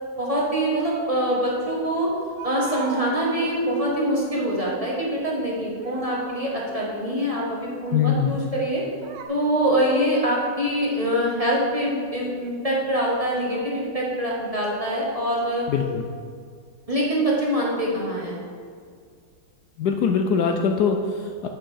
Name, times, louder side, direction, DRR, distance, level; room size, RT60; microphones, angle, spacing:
voice 1, 0.2-2.1 2.4-8.8 9.3-15.7 16.9-18.4, equal, 20° right, -5 dB, 1.4 m, -24 dB
sound 1, 2.4-4.8 5.5-8.5 9.0-9.3, right 6 dB, 80° right, 1.4 m, -40 dB
voice 2, 7.9-8.4 15.7-16.1 19.8-21.5, left 6 dB, 70° left, 4 dB, 1.1 m, -22 dB
7.9 x 6.3 x 5.6 m, 2.1 s
omnidirectional pair, 2.0 m